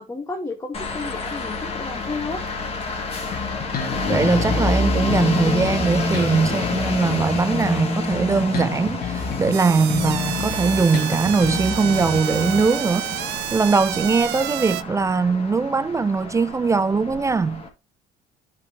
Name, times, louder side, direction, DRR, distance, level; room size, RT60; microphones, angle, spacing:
voice 1, 0.0-2.4, left 3 dB, 15° left, 1.3 m, -32 dB
sound 1, 0.7-17.7, left 3 dB, 35° left, 1.9 m, -28 dB
Bass guitar, 3.3-4.8 5.1-9.6 9.9-12.9, left 5 dB, 60° left, 1.9 m, -30 dB
voice 2, 4.1-17.6, right 4 dB, 20° right, 0.3 m, -21 dB
sound 2, 9.5-14.8, right 15 dB, 80° right, 0.5 m, -30 dB
11.5 x 4.5 x 2.8 m
cardioid pair, 110°, 17 cm